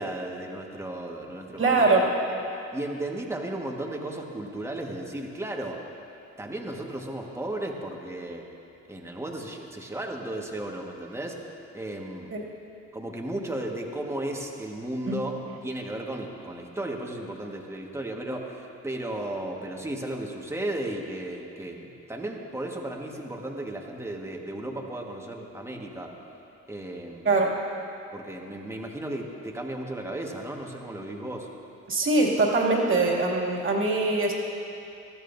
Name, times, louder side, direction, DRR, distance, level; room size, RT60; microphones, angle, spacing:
voice 1, 0.0-2.0 2.7-5.8 6.4-8.4 8.9-11.5 11.7-12.3 12.9-26.1 26.7-27.3 28.1-31.5, right 1 dB, 10° right, 0 dB, 1.6 m, -35 dB
voice 2, 1.6-2.1 12.3-12.4 15.1-15.2 27.2-27.5 31.9-34.3, right 3 dB, 45° right, -2 dB, 2.5 m, -22 dB
20.5 x 14.0 x 2.7 m, 2.8 s
cardioid pair, 90°, 30 cm